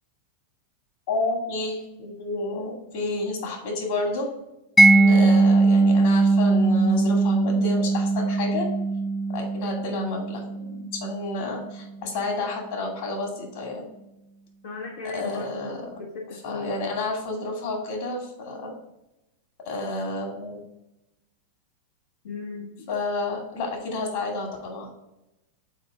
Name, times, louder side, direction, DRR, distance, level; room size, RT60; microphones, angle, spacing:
voice 1, 1.1-4.3 5.1-8.7 9.3-13.8 15.0-15.9 16.3-18.7 19.6-20.6 22.9-24.9, left 3 dB, 55° left, 1 dB, 2.3 m, -30 dB
Mallet percussion, 4.8-11.5, right 3 dB, 15° left, 0.4 m, -20 dB
voice 2, 4.9-5.3 14.6-16.7 22.2-22.7, left 3 dB, 75° left, -5 dB, 1.3 m, -36 dB
6.5 x 4.7 x 3.6 m, 0.93 s
figure-of-eight pair, 95°, 0 cm